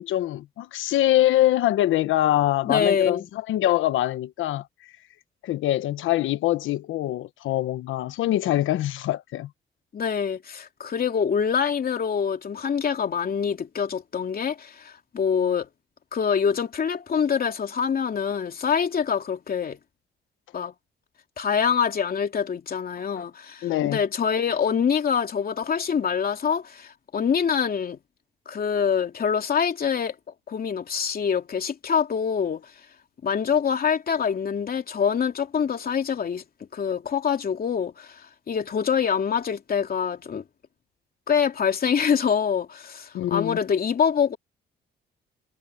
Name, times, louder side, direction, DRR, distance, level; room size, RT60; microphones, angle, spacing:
voice 1, 0.0-4.7 5.4-9.5 23.6-24.0 43.1-43.6, left 13 dB, 85° left, 1.2 m, -24 dB
voice 2, 2.6-3.3 9.9-15.7 16.1-19.8 20.5-20.7 21.4-28.0 28.5-30.2 30.5-32.7 33.2-36.4 36.7-40.4 41.3-44.4, left 7 dB, 50° left, 3.0 m, -25 dB
cardioid pair, 90°, 20 cm